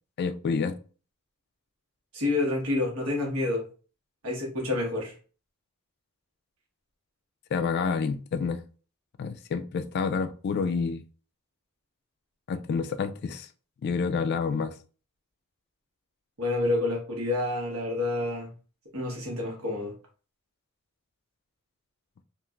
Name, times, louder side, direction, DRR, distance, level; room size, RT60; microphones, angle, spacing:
voice 1, 0.2-0.8 7.5-8.6 9.2-11.0 12.5-13.5 13.8-14.8, left 5 dB, 50° left, 0.3 m, -28 dB
voice 2, 2.1-3.6 4.2-5.1 16.4-18.5 18.9-19.9, left 2 dB, 85° right, 1.1 m, -28 dB
3.0 x 2.4 x 2.4 m
head